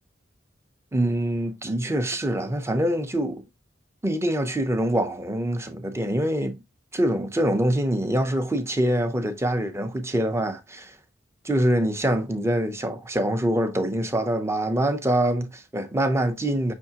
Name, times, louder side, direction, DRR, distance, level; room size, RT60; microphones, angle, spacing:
voice 1, 0.9-3.4 4.0-6.6 6.9-11.0 11.4-16.7, right 1 dB, 15° right, 0.6 m, -24 dB
5.5 x 3.4 x 2.8 m
head